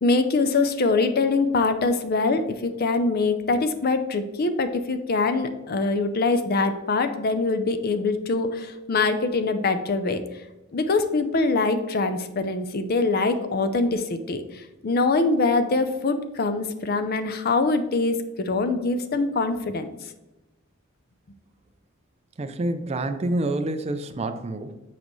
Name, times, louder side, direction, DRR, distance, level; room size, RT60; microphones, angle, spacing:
voice 1, 0.0-10.2 10.7-14.4 14.8-19.9, left 3 dB, 45° left, 10 dB, 0.5 m, -23 dB
voice 2, 22.4-24.8, right 2 dB, 30° right, 9 dB, 0.4 m, -28 dB
7.4 x 4.9 x 3.1 m, 1.0 s
head